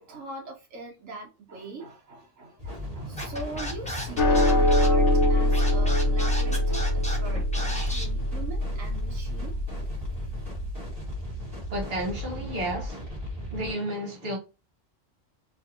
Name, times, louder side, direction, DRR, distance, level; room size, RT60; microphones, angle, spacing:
voice 1, 0.0-9.6, right 2 dB, 80° right, 1.4 m, -42 dB
sound 1, 2.6-13.7, equal, 30° right, 1.8 m, -36 dB
Scratching (performance technique), 3.2-8.0, equal, 5° left, 0.7 m, -35 dB
sound 2, 4.2-10.7, left 1 dB, 65° left, 0.9 m, -24 dB
voice 2, 11.7-13.2 13.5-14.4, right 1 dB, 50° right, 1.4 m, -32 dB
3.1 x 2.6 x 2.7 m
omnidirectional pair, 1.3 m